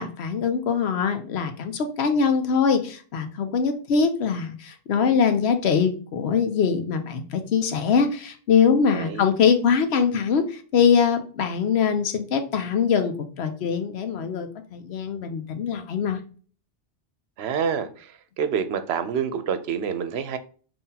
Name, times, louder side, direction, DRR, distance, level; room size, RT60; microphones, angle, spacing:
voice 1, 0.0-16.2, left 6 dB, 75° left, 0.9 m, -23 dB
voice 2, 8.9-9.2 17.4-17.9 18.4-20.4, right 7 dB, 75° right, 0.8 m, -27 dB
5.5 x 2.7 x 2.8 m
omnidirectional pair, 1.1 m